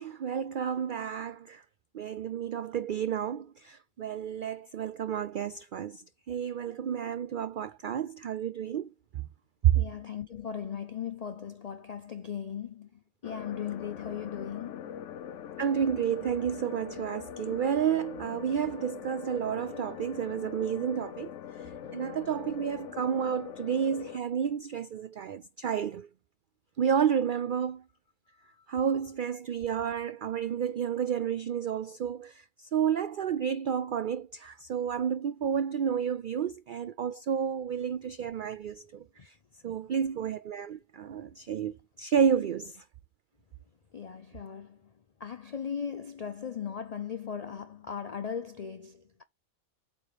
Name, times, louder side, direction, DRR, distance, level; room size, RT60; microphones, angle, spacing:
voice 1, 0.0-1.6 1.9-6.0 6.3-8.9 9.6-9.8 15.6-21.3 21.9-26.1 26.8-27.8 28.7-39.3 39.6-42.8, right 8 dB, 80° right, 0.4 m, -30 dB
voice 2, 9.7-15.0 21.8-21.9 28.3-28.8 43.9-44.9 45.2-49.2, left 7 dB, 90° left, 0.3 m, -38 dB
sound 1, 13.2-24.2, left 9 dB, 70° left, 0.9 m, -42 dB
8.5 x 3.0 x 4.9 m
omnidirectional pair, 1.4 m